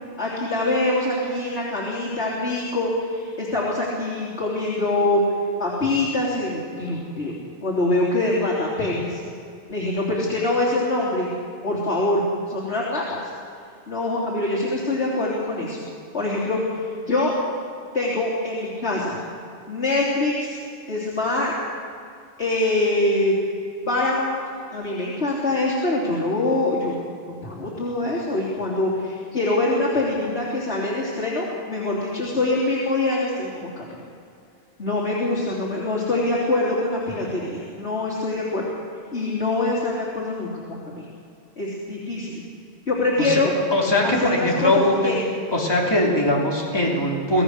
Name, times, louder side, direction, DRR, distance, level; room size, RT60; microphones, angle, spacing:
voice 1, 0.2-5.2 5.6-7.3 7.6-9.2 9.7-11.3 11.6-12.2 12.5-13.2 13.9-15.8 16.1-17.4 17.9-19.2 19.7-20.6 20.9-21.5 22.4-23.3 23.9-24.4 24.7-27.0 27.4-33.9 34.8-38.7 39.1-41.1 41.6-42.4 42.9-43.5 44.0-45.2, left 2 dB, 70° left, -6 dB, 3.6 m, -24 dB
voice 2, 43.7-45.0 45.5-47.4, left 1 dB, 20° left, -3 dB, 3.2 m, -21 dB
25.5 x 16.5 x 6.6 m, 2.4 s
omnidirectional pair, 1.2 m